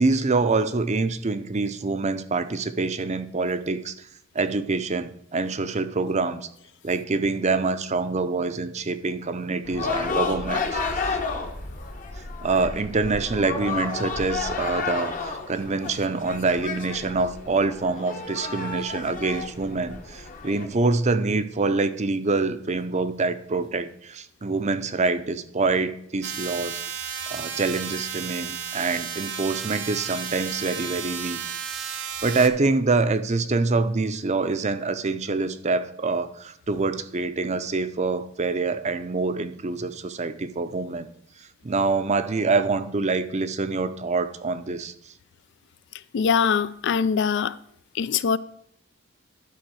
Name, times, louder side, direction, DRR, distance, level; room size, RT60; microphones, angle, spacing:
voice 1, 0.0-3.9 4.3-6.4 6.8-11.2 12.4-31.4 31.7-41.1 41.6-44.9, right 3 dB, 35° right, 0.6 m, -25 dB
sound 1, 9.6-20.7, left 4 dB, 40° left, 0.9 m, -31 dB
sound 2, 26.2-32.5, right 8 dB, 60° right, 0.9 m, -33 dB
voice 2, 46.1-47.6 47.9-48.4, left 6 dB, 55° left, 0.3 m, -22 dB
11.5 x 4.1 x 6.2 m
head